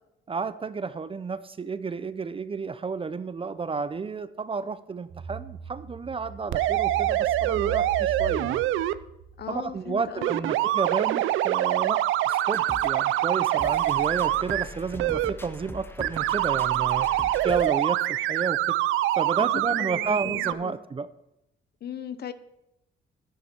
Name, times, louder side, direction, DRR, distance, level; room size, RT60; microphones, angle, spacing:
voice 1, 0.3-8.6 9.5-17.1 17.4-18.8 19.2-21.1, right 5 dB, 30° right, 14 dB, 0.5 m, -31 dB
sound 1, 5.1-10.7 11.1-11.2, right 3 dB, 70° right, 1.7 m, -40 dB
sound 2, 6.5-8.9 10.2-14.6 15.0-15.3 16.0-20.5, right 14 dB, 85° right, 0.5 m, -25 dB
voice 2, 9.4-10.4 19.5-20.8 21.8-22.3, left 8 dB, 55° left, 13 dB, 0.8 m, -38 dB
sound 3, 12.3-17.7, left 1 dB, 10° left, 0.8 m, -42 dB
10.5 x 10.0 x 4.4 m, 0.86 s
cardioid pair, 90°, 20 cm